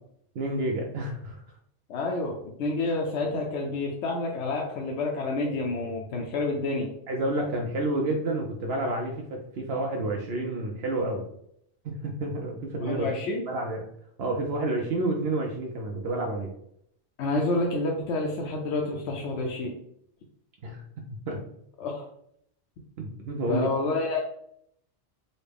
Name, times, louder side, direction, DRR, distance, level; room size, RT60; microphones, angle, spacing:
voice 1, 0.3-1.4 7.1-11.2 11.8-13.1 13.5-13.9 14.2-16.5 20.6-20.8 21.3-21.4 23.0-23.7, right 2 dB, 65° right, 0 dB, 0.8 m, -29 dB
voice 2, 1.9-6.9 12.8-13.4 17.2-19.7 21.8-22.0 23.5-24.2, left 2 dB, 80° left, 0 dB, 0.9 m, -29 dB
4.1 x 2.1 x 3.3 m, 0.70 s
omnidirectional pair, 1.2 m